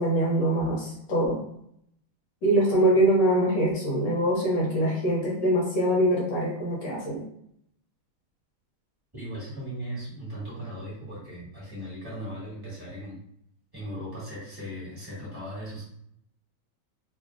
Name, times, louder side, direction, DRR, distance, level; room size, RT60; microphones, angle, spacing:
voice 1, 0.0-1.4 2.4-7.2, right 1 dB, 65° left, -4 dB, 1.4 m, -23 dB
voice 2, 9.1-13.2 13.7-15.8, equal, 15° right, -8 dB, 1.2 m, -38 dB
3.1 x 2.6 x 2.4 m, 0.72 s
omnidirectional pair, 2.2 m